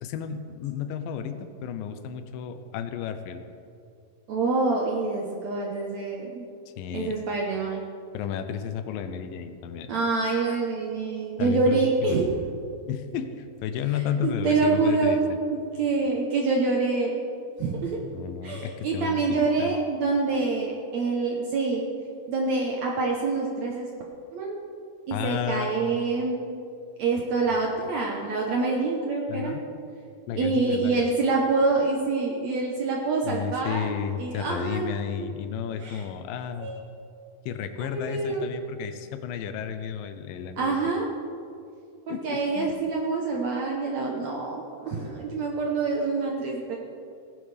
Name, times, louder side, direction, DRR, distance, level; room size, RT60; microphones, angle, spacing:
voice 1, 0.0-3.4 6.8-7.1 8.1-9.9 11.4-12.3 12.9-15.4 18.1-19.7 25.1-25.7 29.3-29.6 30.3-31.1 33.2-36.7 37.5-40.8 42.1-42.7, left 8 dB, 80° left, 9 dB, 2.4 m, -32 dB
voice 2, 4.3-6.5 6.9-7.8 9.9-12.3 14.2-15.3 15.8-17.2 17.6-18.0 18.4-21.9 22.3-23.9 24.3-24.6 25.1-26.4 27.0-29.6 30.4-33.9 34.2-35.3 35.8-36.0 36.6-36.8 37.8-38.6 40.6-41.1 42.1-46.8, right 3 dB, 65° right, -1 dB, 1.9 m, -26 dB
19.0 x 11.0 x 3.4 m, 2.5 s
omnidirectional pair, 4.1 m